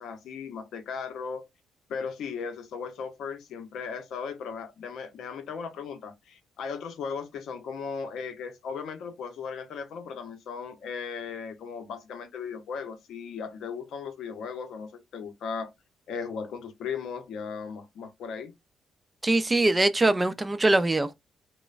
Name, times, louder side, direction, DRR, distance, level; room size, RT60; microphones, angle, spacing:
voice 1, 0.0-1.5 1.9-15.7 16.1-18.5, left 6 dB, 75° left, 0.6 m, -37 dB
voice 2, 19.2-21.1, right 2 dB, 20° right, 0.3 m, -22 dB
3.0 x 2.0 x 2.3 m
cardioid pair, 90°, 0 cm